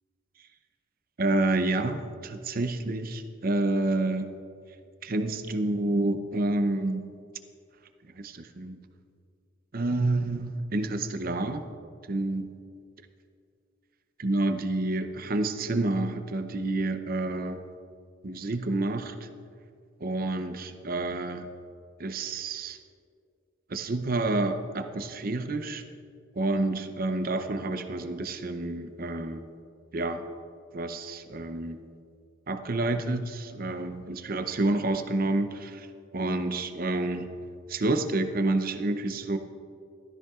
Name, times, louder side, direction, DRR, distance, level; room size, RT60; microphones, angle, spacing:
voice 1, 1.2-4.3 5.0-7.0 8.2-8.8 9.7-11.6 12.1-12.5 14.2-17.6 18.2-19.1 20.0-21.5 22.0-22.8 23.7-25.8 26.3-29.4 29.9-30.3 30.7-31.8 32.5-35.9 36.1-37.3 37.7-39.4, right 2 dB, 50° right, 8 dB, 0.7 m, -29 dB
15.0 x 13.5 x 2.4 m, 2.3 s
head